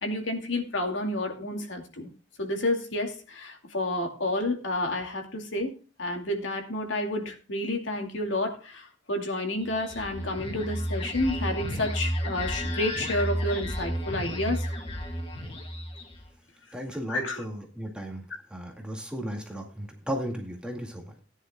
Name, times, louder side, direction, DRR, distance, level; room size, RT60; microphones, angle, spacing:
voice 1, 0.0-2.1 2.4-14.7 17.1-17.4, left 1 dB, 85° left, 4 dB, 2.4 m, -30 dB
sound 1, 9.6-16.3, equal, 30° left, 2.4 m, -32 dB
voice 2, 16.7-18.2 18.5-21.2, equal, 5° right, 1 dB, 2.1 m, -35 dB
18.0 x 10.0 x 2.3 m, 0.33 s
head